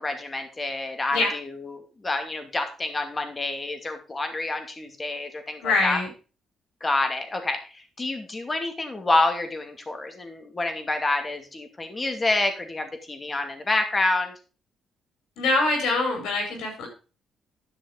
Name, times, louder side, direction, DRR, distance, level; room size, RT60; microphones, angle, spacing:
voice 1, 0.0-6.0 6.8-14.3, left 2 dB, 25° left, 6 dB, 2.5 m, -28 dB
voice 2, 5.6-6.1 15.4-16.9, left 3 dB, 85° left, 2 dB, 5.1 m, -24 dB
11.0 x 6.2 x 5.2 m, 0.34 s
cardioid pair, 90°, 0 cm